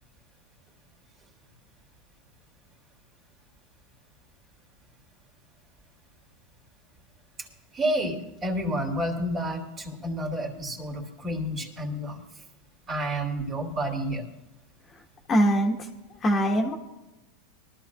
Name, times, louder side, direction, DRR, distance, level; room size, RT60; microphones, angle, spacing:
voice 1, 7.7-12.2 12.9-14.3, right 1 dB, 30° right, 2 dB, 2.8 m, -30 dB
voice 2, 15.3-15.8 16.2-16.8, equal, 25° left, 1 dB, 1.5 m, -22 dB
22.0 x 13.0 x 2.5 m, 1.0 s
supercardioid pair, 125°, 0 cm